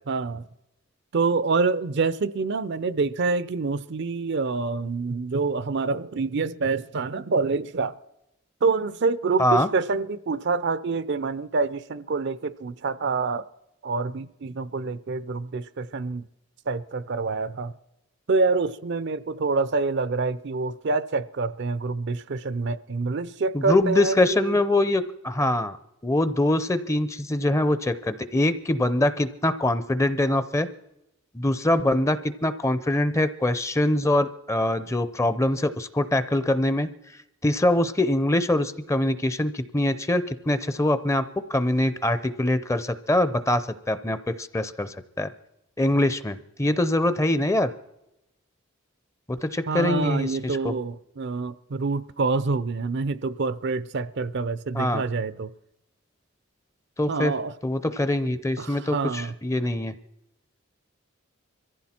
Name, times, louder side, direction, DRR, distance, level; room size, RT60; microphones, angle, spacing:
voice 1, 0.1-0.4 1.1-7.9 8.6-13.4 13.8-16.2 16.7-17.7 18.3-24.6 49.7-55.5 57.1-57.5 58.6-59.3, right 4 dB, 55° right, 0.5 m, -26 dB
voice 2, 23.5-25.8 26.0-30.7 31.3-36.9 37.4-41.2 41.5-45.3 45.8-47.7 49.3-50.7 54.7-55.0 57.0-57.3 57.6-59.9, left 1 dB, 15° left, 0.6 m, -23 dB
22.5 x 15.0 x 4.4 m
head